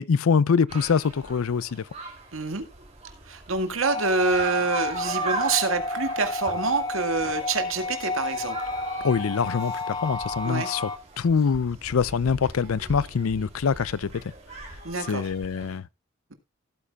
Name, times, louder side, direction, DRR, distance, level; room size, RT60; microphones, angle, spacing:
voice 1, 0.0-1.8 9.0-10.9 11.2-14.1 15.1-15.8, left 6 dB, 80° left, 0.5 m, -24 dB
sound 1, 0.7-15.8, right 3 dB, 30° right, 2.9 m, -40 dB
voice 2, 2.3-2.6 3.3-8.6 10.4-10.7 14.8-15.3, right 4 dB, 75° right, 1.8 m, -26 dB
sound 2, 3.8-11.0, left 2 dB, 20° left, 0.9 m, -31 dB
16.5 x 8.6 x 2.4 m
head